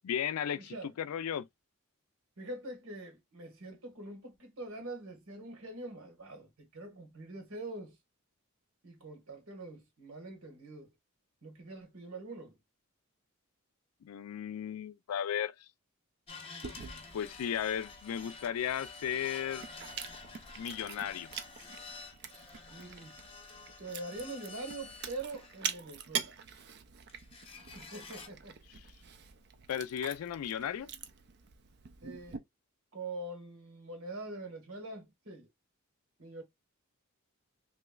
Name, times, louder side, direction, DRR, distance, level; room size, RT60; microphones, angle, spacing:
voice 1, 0.0-1.5 14.0-15.5 17.1-19.7 20.6-21.3 29.7-30.9, left 9 dB, 85° left, 0.3 m, -35 dB
voice 2, 0.5-0.9 2.4-8.0 8.8-10.9 11.4-12.6 22.7-23.1 23.8-26.4 27.7-28.6 32.0-32.4 32.9-35.5 36.2-36.4, right 2 dB, 70° right, 1.4 m, -44 dB
sound 1, 16.3-25.9 27.1-28.3, left 4 dB, 25° left, 0.7 m, -49 dB
Chewing mastication, 16.6-32.4, right 7 dB, 50° right, 0.4 m, -45 dB
3.0 x 2.9 x 2.2 m
head